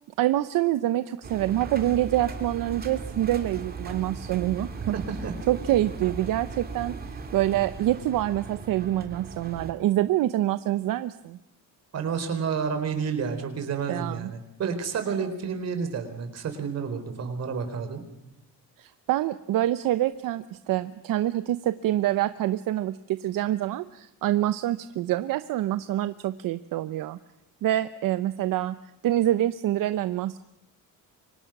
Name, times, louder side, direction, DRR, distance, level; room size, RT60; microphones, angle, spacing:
voice 1, 0.2-5.0 5.5-11.4 13.9-14.3 18.8-27.2 27.6-28.8 29.0-30.4, right 13 dB, 70° right, 12 dB, 0.9 m, -26 dB
Engine, 1.2-9.7, right 4 dB, 25° right, 2.5 m, -38 dB
voice 2, 4.9-5.3 11.9-18.0, right 6 dB, 45° right, 7 dB, 4.2 m, -30 dB
29.5 x 25.0 x 6.1 m, 0.89 s
cardioid pair, 170°, 34 cm